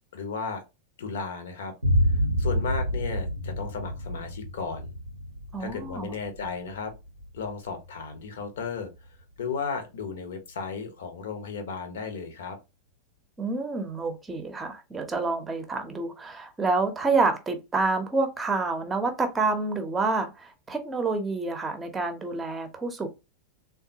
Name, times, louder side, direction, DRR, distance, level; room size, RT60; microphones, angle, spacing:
voice 1, 0.1-0.6 1.0-1.7 2.1-4.9 5.6-6.9 7.3-8.9 9.4-12.6, left 5 dB, 60° left, 0.8 m, -34 dB
sound 1, 1.8-9.2, equal, 85° right, 0.6 m, -29 dB
voice 2, 5.5-6.1 13.4-23.1, right 3 dB, 15° right, 0.7 m, -28 dB
3.6 x 2.3 x 2.7 m
figure-of-eight pair, 90°, 0 cm